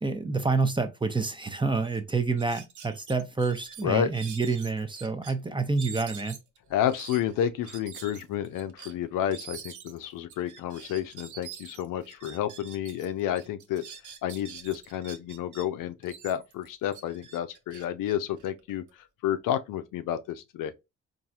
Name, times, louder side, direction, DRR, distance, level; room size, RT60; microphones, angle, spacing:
voice 1, 0.0-6.4, right 4 dB, 15° right, 0.7 m, -28 dB
sound 1, 1.4-1.5 1.8-2.0 2.4-5.3 5.7-13.1 13.3-15.6 16.0-18.9, right 7 dB, 55° right, 0.8 m, -46 dB
voice 2, 6.7-13.8 14.2-18.8 19.2-20.7, left 10 dB, 65° left, 0.5 m, -30 dB
4.0 x 2.6 x 2.3 m
hypercardioid pair, 50°, 35 cm